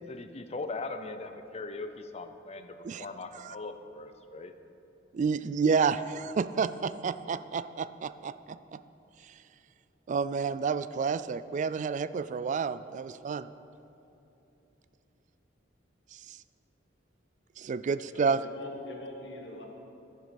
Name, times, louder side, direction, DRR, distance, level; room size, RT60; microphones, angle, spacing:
voice 1, 0.0-4.6, left 3 dB, 35° left, 9 dB, 0.6 m, -40 dB
voice 2, 5.1-8.8 10.1-13.5 16.1-16.4 17.6-18.4, right 5 dB, 40° right, 14 dB, 0.3 m, -30 dB
voice 3, 18.1-19.7, left 1 dB, 65° left, 1 dB, 1.7 m, -42 dB
11.0 x 10.5 x 5.2 m, 2.9 s
head